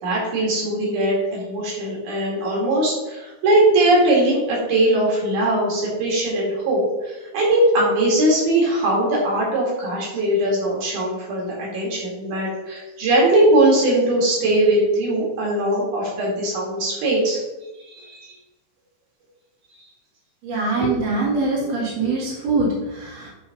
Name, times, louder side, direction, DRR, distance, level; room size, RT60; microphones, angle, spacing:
voice 1, 0.0-17.4 17.9-18.3, right 1 dB, 85° right, -4 dB, 3.7 m, -20 dB
voice 2, 20.4-23.3, right 3 dB, 60° right, -5 dB, 3.2 m, -23 dB
8.5 x 3.4 x 6.0 m, 1.0 s
omnidirectional pair, 3.4 m